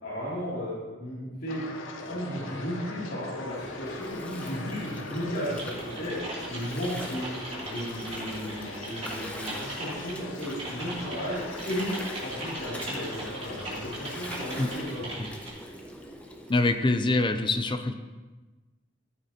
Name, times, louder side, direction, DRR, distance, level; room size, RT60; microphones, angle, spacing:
voice 1, 0.0-0.7 1.0-1.6 2.0-6.2 6.5-7.3 7.6-11.9 12.2-15.1, equal, 55° left, -11 dB, 2.8 m, -35 dB
sound 1, 1.5-14.9, left 2 dB, 90° left, 0.9 m, -41 dB
Gurgling, 3.4-16.7, equal, 5° left, 0.9 m, -43 dB
Typing, 5.6-15.5, right 1 dB, 35° right, 3.0 m, -39 dB
voice 2, 16.5-17.9, left 2 dB, 25° left, 8 dB, 0.5 m, -25 dB
14.0 x 8.0 x 2.9 m, 1.2 s
head